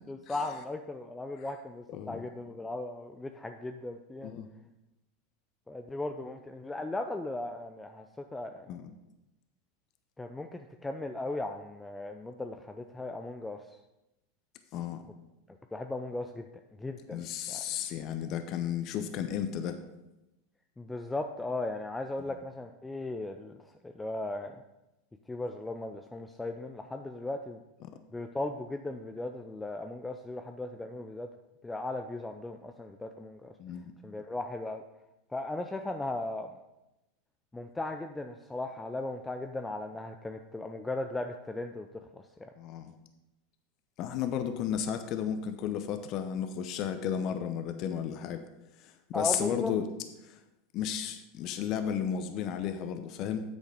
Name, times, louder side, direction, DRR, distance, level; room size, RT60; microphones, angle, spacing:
voice 1, 0.1-4.3 5.7-8.7 10.2-13.8 15.7-16.5 16.8-17.2 17.5-17.7 20.8-23.6 23.8-24.6 25.3-27.6 28.1-31.3 31.6-33.5 34.0-34.8 35.3-36.5 37.5-41.9 42.1-42.5 49.1-49.7, left 2 dB, 10° left, 6 dB, 0.5 m, -37 dB
voice 2, 1.9-2.2 4.2-4.5 8.7-8.9 14.7-15.0 17.1-19.8 33.6-33.9 42.6-42.9 44.0-48.4 48.8-49.8 50.2-50.4 50.7-53.4, left 9 dB, 50° left, 8 dB, 0.8 m, -33 dB
8.3 x 6.4 x 5.2 m, 0.94 s
hypercardioid pair, 105°, 0 cm